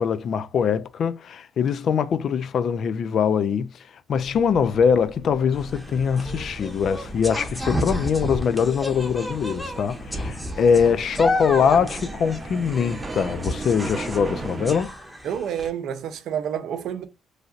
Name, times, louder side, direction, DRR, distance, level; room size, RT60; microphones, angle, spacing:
voice 1, 0.0-3.7 4.1-14.9, left 7 dB, 60° left, 0.3 m, -22 dB
sound 1, 4.1-14.8, right 2 dB, 30° right, 0.6 m, -37 dB
sound 2, 5.5-15.7, left 1 dB, 5° left, 0.8 m, -32 dB
voice 2, 15.2-17.0, right 9 dB, 75° right, 0.5 m, -29 dB
3.2 x 2.6 x 2.4 m
cardioid pair, 90°, 0 cm